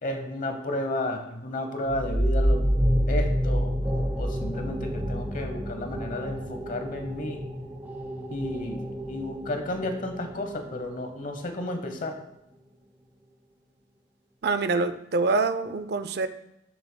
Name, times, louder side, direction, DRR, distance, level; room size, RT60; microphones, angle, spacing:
voice 1, 0.0-2.7 3.1-7.4 8.3-12.2, left 1 dB, 45° left, 5 dB, 1.0 m, -32 dB
sound 1, 1.9-11.2, equal, 10° right, 0.6 m, -28 dB
voice 2, 14.4-16.3, right 3 dB, 55° right, 11 dB, 0.5 m, -25 dB
11.0 x 6.8 x 2.2 m, 0.85 s
head